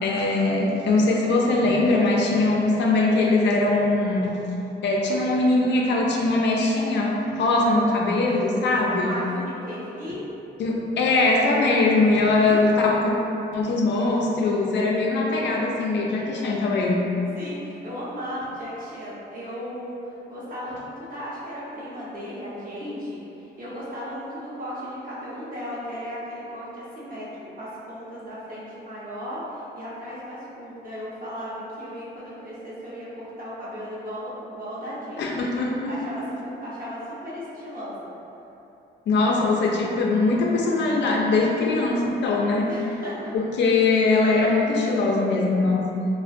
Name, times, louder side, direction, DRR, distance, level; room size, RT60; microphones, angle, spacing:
voice 1, 0.0-4.3 4.8-9.2 10.6-13.1 13.5-17.0 35.2-35.9 39.1-42.7 43.3-46.0, left 3 dB, 65° left, -2 dB, 0.4 m, -21 dB
voice 2, 9.0-10.2 12.3-12.8 13.6-13.7 17.3-27.3 27.5-35.5 35.9-37.9 42.6-43.3, equal, 45° right, -8 dB, 0.8 m, -36 dB
2.4 x 2.1 x 2.5 m, 2.9 s
cardioid pair, 90°, 20 cm